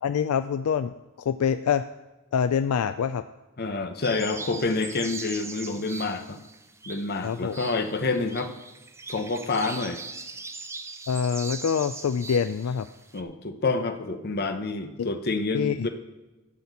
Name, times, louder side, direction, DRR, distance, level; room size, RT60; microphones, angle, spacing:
voice 1, 0.0-1.8 2.3-3.2 7.2-7.6 11.1-12.9 15.0-15.1 15.5-15.9, left 7 dB, 75° left, 10 dB, 0.4 m, -25 dB
voice 2, 3.6-6.4 6.9-8.5 9.1-10.0 13.1-15.9, left 3 dB, 45° left, 7 dB, 0.8 m, -28 dB
sound 1, 4.0-13.2, right 3 dB, 10° right, 0.5 m, -40 dB
12.0 x 4.3 x 8.2 m, 1.1 s
head